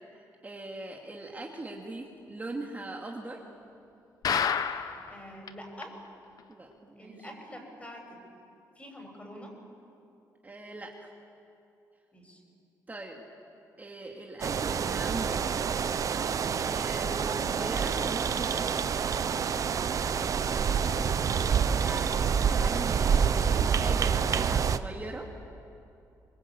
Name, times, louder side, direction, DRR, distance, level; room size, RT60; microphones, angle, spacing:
voice 1, 0.1-3.4 6.5-7.1 10.4-11.1 12.9-13.2 13.8-15.4 16.6-18.8 21.7-25.3, right 2 dB, 25° right, 0 dB, 2.5 m, -40 dB
sound 1, 4.2-5.1 5.5-5.6 5.8-5.9 6.4-6.5, left 7 dB, 60° left, 1.3 m, -28 dB
voice 2, 5.1-5.9 7.0-8.2 8.8-9.5 12.1-12.4 20.3-21.0, equal, 20° left, 2 dB, 7.1 m, -46 dB
sound 2, 14.4-24.8, right 7 dB, 50° right, 0.9 m, -27 dB
25.0 x 21.5 x 8.6 m, 2.7 s
cardioid pair, 90°, 7 cm